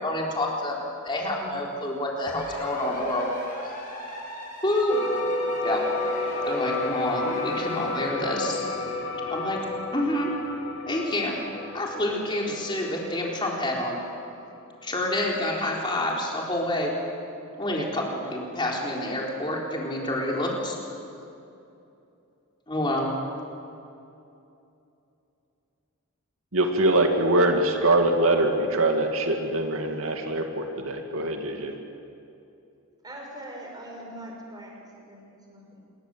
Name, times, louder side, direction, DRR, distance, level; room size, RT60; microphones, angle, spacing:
voice 1, 0.0-0.8 1.0-3.3 4.6-5.0 5.6-5.8 6.5-8.7 9.3-10.3 10.9-11.4 11.7-14.0 14.8-16.9 17.6-20.8 22.7-23.1, left 1 dB, 20° left, -2 dB, 4.1 m, -28 dB
sound 1, 2.2-8.1, equal, 35° left, 7.7 m, -38 dB
sound 2, 4.9-14.8, left 2 dB, 55° left, 2.4 m, -32 dB
voice 2, 26.5-31.8, right 2 dB, 75° right, 3 dB, 2.3 m, -23 dB
voice 3, 33.0-35.8, right 1 dB, 20° right, 0 dB, 5.3 m, -42 dB
26.5 x 22.5 x 7.9 m, 2.8 s
head